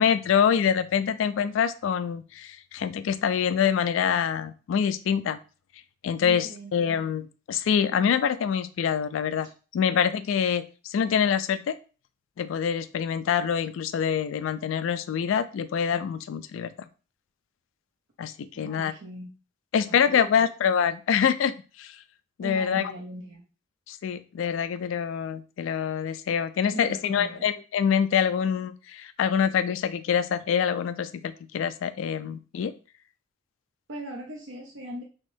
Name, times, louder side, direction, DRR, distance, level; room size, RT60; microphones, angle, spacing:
voice 1, 0.0-5.4 6.0-9.5 9.7-11.8 12.4-16.9 18.2-18.9 19.7-22.0 22.4-22.9 23.9-32.7, left 7 dB, 80° left, 11 dB, 0.3 m, -25 dB
voice 2, 6.2-7.1 9.4-9.5 18.5-19.3 19.9-20.4 22.4-23.5 26.7-27.5 33.9-35.0, right 1 dB, 75° right, 0 dB, 0.6 m, -40 dB
3.4 x 3.0 x 2.6 m, 0.34 s
head